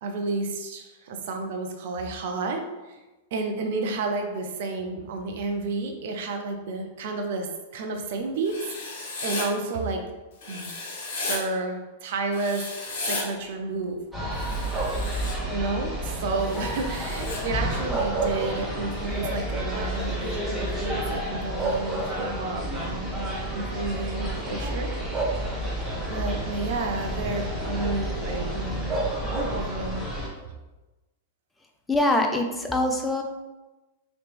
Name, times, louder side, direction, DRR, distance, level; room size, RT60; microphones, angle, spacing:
voice 1, 0.0-3.0 3.3-8.6 9.0-10.0 10.5-10.7 11.1-12.7 13.1-14.0 15.5-24.9 25.3-25.7 26.1-30.1, right 3 dB, 65° right, 4 dB, 0.5 m, -31 dB
Writing, 8.4-9.5 10.4-11.4 12.3-13.2 14.3-15.4 16.4-17.4, left 3 dB, 60° left, 1.1 m, -34 dB
sound 1, 14.1-30.3, equal, 5° right, 1.4 m, -31 dB
sound 2, 14.7-15.2 17.7-19.1 19.5-19.6 21.1-21.2 21.6-22.7 23.7-23.9 25.1-25.8 28.9-29.8, right 3 dB, 25° right, 0.9 m, -30 dB
voice 2, 31.9-33.2, left 1 dB, 10° left, 3 dB, 0.5 m, -23 dB
3.0 x 2.9 x 3.3 m, 1.1 s
hypercardioid pair, 110°, 0 cm